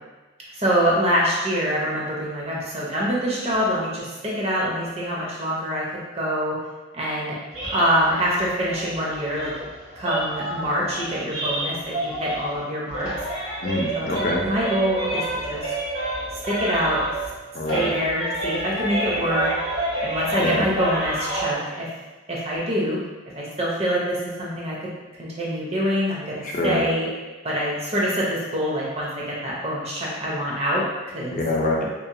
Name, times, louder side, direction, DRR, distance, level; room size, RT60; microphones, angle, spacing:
voice 1, 0.5-5.8 6.1-6.6 6.9-7.4 7.7-9.5 10.0-13.1 13.9-14.1 14.5-15.7 16.5-17.0 17.7-19.5 20.0-21.9 22.3-23.0 23.4-24.8 25.2-27.1 27.4-31.4, equal, 30° right, -5 dB, 0.4 m, -25 dB
sound 1, 7.5-12.6 12.9-17.4 17.7-21.5, right 1 dB, 85° right, 1.0 m, -29 dB
voice 2, 13.6-14.4 17.5-17.9 20.4-20.7 26.4-26.8 31.3-31.8, left 2 dB, 40° left, -2 dB, 0.4 m, -25 dB
2.8 x 2.0 x 2.5 m, 1.2 s
head